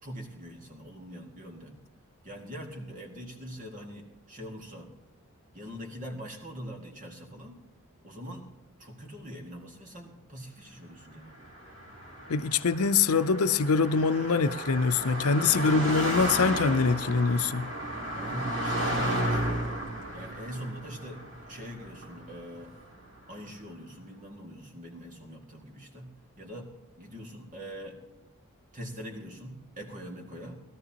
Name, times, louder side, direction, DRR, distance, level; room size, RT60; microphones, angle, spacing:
voice 1, 0.0-1.8 2.2-4.9 5.5-7.6 8.0-8.5 8.8-11.4 15.5-15.8 18.1-19.6 20.1-22.8 23.3-26.1 26.4-26.7 27.0-28.0 28.7-30.6, equal, 35° right, 2.1 m, -43 dB
Car passing by, 11.3-22.9, right 1 dB, 60° right, 3.8 m, -33 dB
voice 2, 12.3-17.7, left 5 dB, 90° left, 0.6 m, -24 dB
20.5 x 13.0 x 2.9 m
head